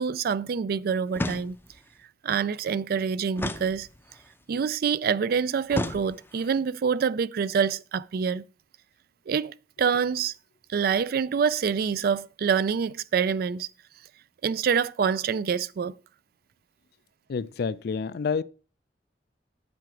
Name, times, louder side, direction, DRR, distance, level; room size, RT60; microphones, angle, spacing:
voice 1, 0.0-1.6 2.2-3.9 4.5-8.4 9.3-10.3 10.7-13.7 14.4-15.9, right 6 dB, 60° right, 0.3 m, -26 dB
sound 1, 1.1-1.9 3.4-4.3 5.7-6.6, left 1 dB, 15° left, 0.5 m, -33 dB
voice 2, 17.3-18.4, left 5 dB, 60° left, 0.4 m, -28 dB
7.8 x 5.0 x 5.8 m
head